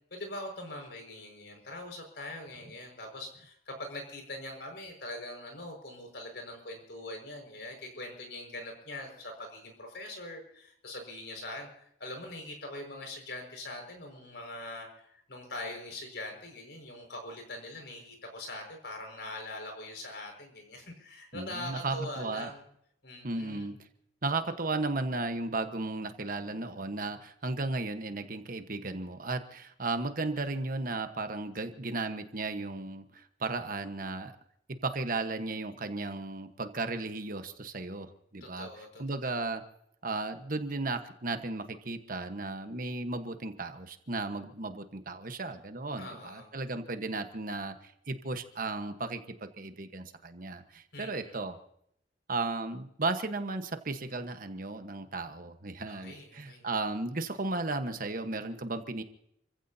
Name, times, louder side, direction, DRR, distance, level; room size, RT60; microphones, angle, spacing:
voice 1, 0.1-11.7 12.0-22.6 23.0-23.7 38.4-39.0 46.0-46.5 50.9-51.4 55.9-56.6, left 1 dB, 65° left, 3 dB, 5.4 m, -42 dB
voice 2, 21.3-22.5 23.2-23.8 24.2-34.3 34.7-38.7 39.0-39.6 40.0-51.6 52.3-59.0, right 3 dB, 50° right, 8 dB, 1.2 m, -35 dB
29.0 x 15.5 x 2.8 m, 0.73 s
head